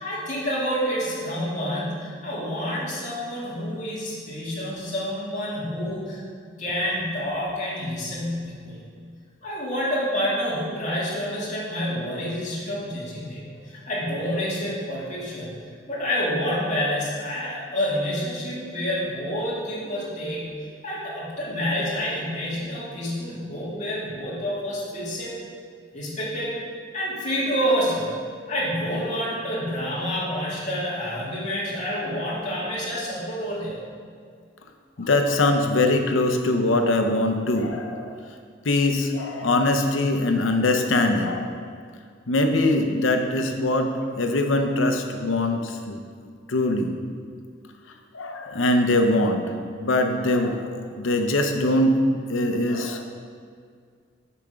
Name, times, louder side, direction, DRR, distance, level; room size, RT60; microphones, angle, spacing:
voice 1, 0.0-6.2 6.6-8.8 9.4-13.4 13.7-15.5 15.9-20.5 20.8-25.4 25.9-26.6 26.9-28.1 28.5-33.8 35.0-35.1, equal, 40° left, -7 dB, 2.2 m, -28 dB
voice 2, 35.0-38.2 38.6-41.7 42.3-43.9 44.2-47.0 48.1-49.4 49.8-52.0 52.3-53.0, left 2 dB, 80° left, 5 dB, 0.8 m, -22 dB
7.0 x 5.8 x 5.1 m, 2.1 s
head